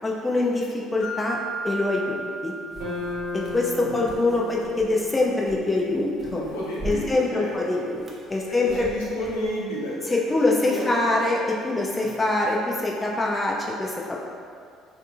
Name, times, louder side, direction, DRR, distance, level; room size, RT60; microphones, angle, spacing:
voice 1, 0.0-1.4 1.6-2.5 3.3-6.4 6.8-8.0 8.3-8.9 10.1-14.2, left 2 dB, 20° left, -2 dB, 0.4 m, -24 dB
Mallet percussion, 1.0-3.6, right 3 dB, 60° left, 0.9 m, -35 dB
sound 1, 2.7-9.5, right 2 dB, 35° right, 0.5 m, -42 dB
sound 2, 2.8-7.1, left 2 dB, 85° right, 1.0 m, -36 dB
voice 2, 6.3-7.9 8.5-10.0 10.3-11.1 12.0-12.2, equal, 75° left, -6 dB, 0.6 m, -32 dB
2.6 x 2.4 x 2.5 m, 2.2 s
figure-of-eight pair, 55°, 0 cm